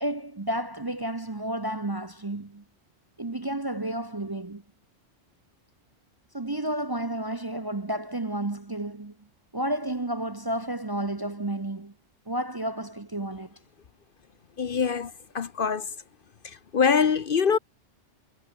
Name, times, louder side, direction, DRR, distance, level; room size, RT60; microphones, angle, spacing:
voice 1, 0.0-2.6 3.2-4.6 6.3-9.1 9.5-11.9 12.3-13.6, right 1 dB, 20° right, 0.8 m, -31 dB
voice 2, 14.6-15.9 16.4-17.6, left 6 dB, 50° left, 1.0 m, -24 dB
omnidirectional pair, 1.2 m